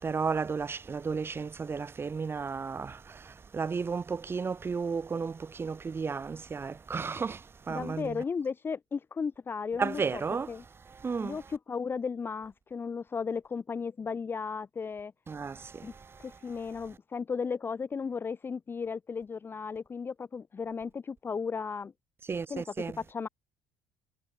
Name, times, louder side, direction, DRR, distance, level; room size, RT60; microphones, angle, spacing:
voice 1, 0.0-3.0 3.5-7.4 7.7-8.2 9.8-10.5 11.0-11.4 15.3-15.6 22.3-23.0, right 5 dB, 30° right, 4.1 m, -33 dB
voice 2, 7.7-10.2 10.5-10.6 11.2-15.1 15.8-15.9 16.2-21.9 22.5-22.6 23.1-23.3, left 5 dB, 30° left, 0.7 m, -35 dB
supercardioid pair, 80°, 8 cm